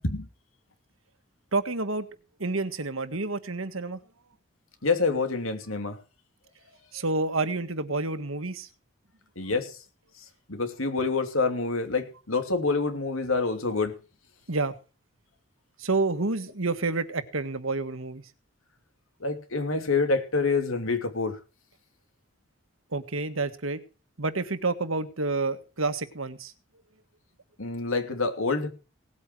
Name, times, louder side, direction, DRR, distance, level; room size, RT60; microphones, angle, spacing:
voice 1, 1.5-2.1 2.4-4.0 6.9-8.7 14.5-14.7 15.8-18.2 22.9-23.8 24.2-26.5, right 3 dB, 90° right, 10 dB, 1.7 m, -29 dB
voice 2, 4.8-6.0 9.4-9.8 10.5-13.9 19.2-21.4 27.6-28.7, left 3 dB, 90° left, 7 dB, 2.9 m, -27 dB
18.5 x 8.7 x 6.1 m, 0.34 s
head